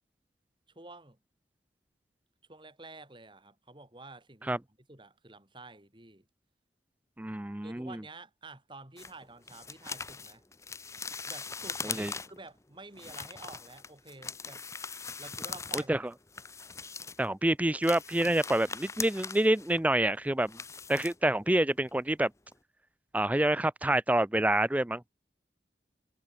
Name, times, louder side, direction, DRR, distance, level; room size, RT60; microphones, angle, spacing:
voice 1, 0.7-1.2 2.5-4.6 4.9-6.3 7.6-10.4 11.2-14.6 15.2-16.1, right 2 dB, 30° right, 3.2 m, -50 dB
voice 2, 7.2-8.0 11.8-12.1 15.7-16.0 17.2-20.6 20.9-22.3 23.1-25.1, right 1 dB, 10° right, 0.4 m, -27 dB
sound 1, 9.0-12.5 12.9-15.9 16.1-17.3 17.7-21.6 21.9-22.1 22.5-22.6, left 5 dB, 15° left, 1.0 m, -41 dB
head